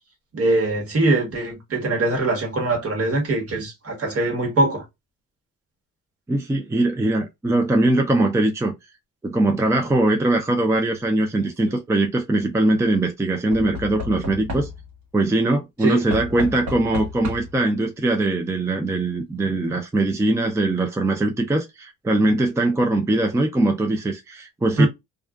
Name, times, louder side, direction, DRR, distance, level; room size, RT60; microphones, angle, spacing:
voice 1, 0.3-4.8 15.8-16.0 24.8-24.9, right 2 dB, 50° right, 1.3 m, -22 dB
voice 2, 6.3-8.7 9.2-14.7 15.1-24.9, right 2 dB, 10° right, 0.4 m, -21 dB
Knock / Wood, 11.3-11.8 13.5-15.0 16.1-17.7 18.7-18.8 19.0-19.1, left 1 dB, 70° right, 1.1 m, -33 dB
2.4 x 2.3 x 2.3 m
cardioid pair, 90°, 30 cm